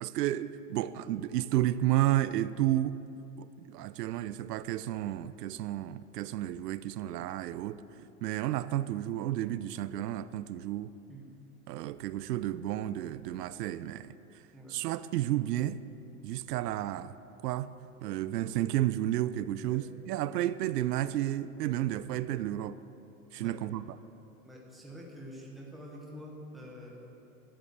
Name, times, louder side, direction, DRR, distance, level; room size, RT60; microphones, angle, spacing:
voice 1, 0.0-3.0 3.4-10.9 11.7-14.1 14.7-15.8 16.2-17.1 17.4-17.7 18.0-22.8 23.3-23.9, right 13 dB, 85° right, 16 dB, 0.6 m, -32 dB
voice 2, 24.4-27.1, equal, ahead, -2 dB, 0.6 m, -47 dB
12.5 x 7.1 x 7.8 m, 2.8 s
supercardioid pair, 165°, 47 cm